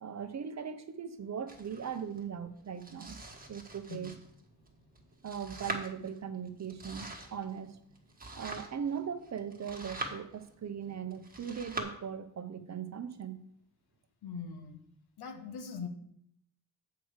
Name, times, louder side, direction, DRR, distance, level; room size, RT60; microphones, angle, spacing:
voice 1, 0.0-3.2 3.5-4.1 5.2-7.8 8.3-13.4, right 7 dB, 45° right, 10 dB, 0.9 m, -39 dB
Domestic sounds home sounds, 1.5-11.8, right 2 dB, 25° right, 1.5 m, -45 dB
voice 2, 14.2-14.8 15.2-15.9, left 5 dB, 85° left, 6 dB, 1.3 m, -41 dB
7.8 x 4.7 x 6.5 m, 0.70 s
cardioid pair, 90°, 37 cm